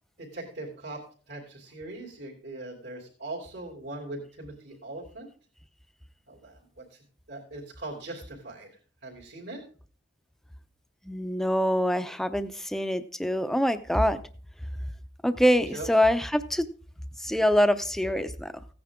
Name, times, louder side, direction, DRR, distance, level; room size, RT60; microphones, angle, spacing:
voice 1, 0.2-1.0 1.3-5.3 6.3-7.0 7.3-8.7 9.0-9.6 15.7-15.9, right 2 dB, 65° right, -5 dB, 3.0 m, -40 dB
voice 2, 11.1-14.2 15.2-16.7 17.2-18.5, equal, ahead, 11 dB, 0.6 m, -24 dB
16.0 x 9.6 x 3.6 m, 0.40 s
head